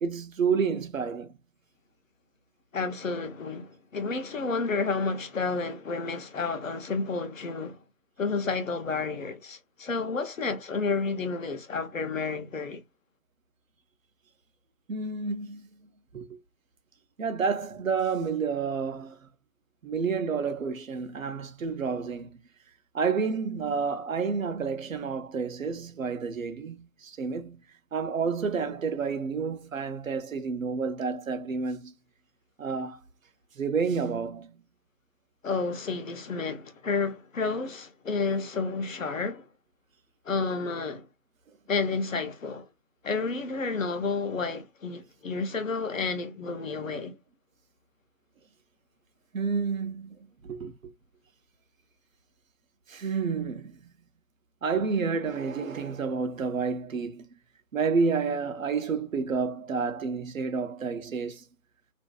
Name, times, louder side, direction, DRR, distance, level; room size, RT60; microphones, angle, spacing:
voice 1, 0.0-1.3 14.9-15.7 16.1-16.4 17.2-19.2 19.8-22.4 22.9-27.6 27.9-31.9 32.6-33.0 33.6-34.5 49.3-50.1 50.4-50.9 52.9-53.7 54.6-57.2 57.7-61.4, right 5 dB, 65° right, 0.6 m, -30 dB
voice 2, 2.7-7.8 8.2-12.8 35.4-39.5 40.3-41.1 41.7-42.7 43.0-47.2, left 4 dB, 60° left, 0.7 m, -30 dB
2.6 x 2.2 x 2.2 m
figure-of-eight pair, 155°, 44 cm